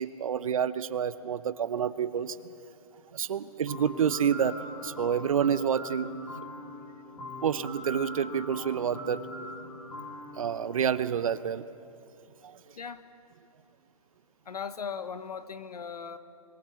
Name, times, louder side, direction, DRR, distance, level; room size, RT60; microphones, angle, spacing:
voice 1, 0.0-2.4 3.1-4.6 4.8-6.1 7.4-9.2 10.4-11.6 12.4-12.6, right 8 dB, 60° right, 15 dB, 0.8 m, -28 dB
sound 1, 3.6-11.5, left 1 dB, 10° left, 7.6 m, -42 dB
voice 2, 14.4-16.2, left 6 dB, 85° left, 12 dB, 1.3 m, -38 dB
26.0 x 22.5 x 5.9 m, 2.8 s
hypercardioid pair, 155°, 19 cm